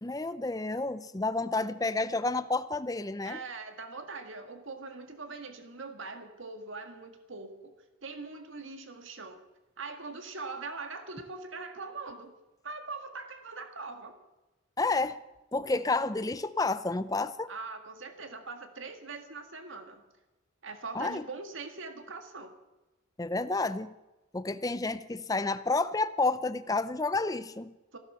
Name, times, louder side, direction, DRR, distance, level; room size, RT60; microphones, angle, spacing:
voice 1, 0.0-3.4 14.8-15.2 15.5-17.5 20.9-21.2 23.2-23.9 24.3-27.7, left 3 dB, 15° left, 13 dB, 0.5 m, -30 dB
voice 2, 3.2-7.7 8.0-9.4 9.8-12.3 12.6-14.2 17.5-20.0 20.6-22.6 27.9-28.0, right 4 dB, 65° right, 7 dB, 1.8 m, -42 dB
15.0 x 12.0 x 6.9 m, 1.1 s
head